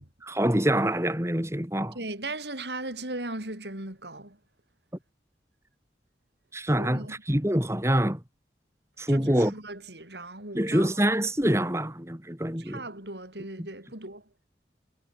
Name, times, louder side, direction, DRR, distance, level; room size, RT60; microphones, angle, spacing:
voice 1, 0.2-2.0 6.5-8.2 9.0-9.5 10.5-12.8 13.6-13.7, right 1 dB, 15° right, 2.7 m, -25 dB
voice 2, 1.9-4.4 6.8-7.1 9.1-10.9 12.6-14.2, right 2 dB, 75° right, 7.2 m, -37 dB
head